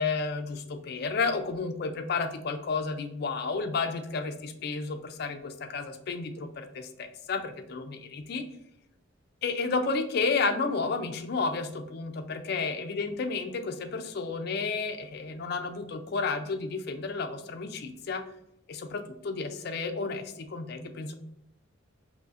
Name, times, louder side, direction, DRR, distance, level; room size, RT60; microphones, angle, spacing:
voice 1, 0.0-8.4 9.4-18.2 18.7-21.1, left 4 dB, 50° left, 8 dB, 0.4 m, -31 dB
4.0 x 3.0 x 2.4 m, 0.78 s
head